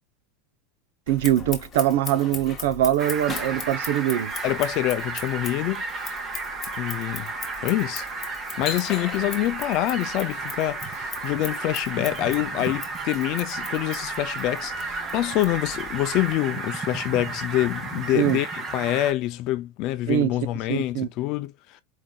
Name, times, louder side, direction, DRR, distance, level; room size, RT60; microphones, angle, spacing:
Scissors, 1.1-16.3, left 6 dB, 20° left, 1.2 m, -39 dB
voice 1, 1.1-4.3 18.1-18.4 20.1-20.3 20.7-21.1, right 12 dB, 80° right, 0.7 m, -23 dB
Fowl, 3.0-19.1, right 3 dB, 20° right, 0.9 m, -33 dB
voice 2, 4.4-5.8 6.8-8.1 8.6-21.8, left 15 dB, 40° left, 0.5 m, -26 dB
4.9 x 3.7 x 2.4 m
supercardioid pair, 165°, 0 cm